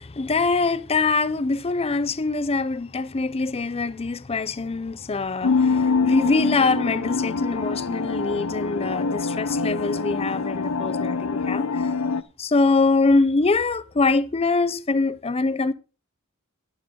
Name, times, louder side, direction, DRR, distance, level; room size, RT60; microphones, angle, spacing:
voice 1, 0.0-11.9 12.4-15.7, left 3 dB, 30° left, 0.6 m, -23 dB
sound 1, 5.4-12.2, left 4 dB, 85° left, 0.7 m, -25 dB
11.5 x 11.0 x 3.7 m
head